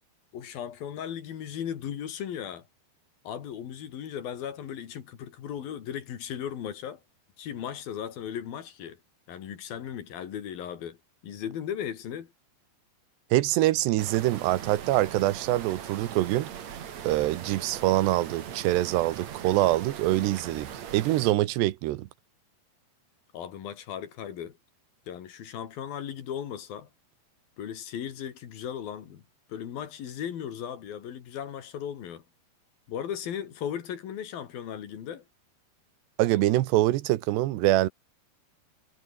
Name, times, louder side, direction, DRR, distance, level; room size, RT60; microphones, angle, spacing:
voice 1, 0.3-2.7 3.2-7.0 7.4-9.0 9.3-11.0 11.2-12.3 23.3-24.6 25.1-26.9 27.6-29.2 29.5-32.2 32.9-35.2, left 9 dB, 65° left, 3.9 m, -36 dB
voice 2, 13.3-16.5 17.0-22.1 36.2-37.9, right 16 dB, 90° right, 3.2 m, -25 dB
sound 1, 14.0-21.3, right 9 dB, 50° right, 2.8 m, -40 dB
omnidirectional pair, 4.8 m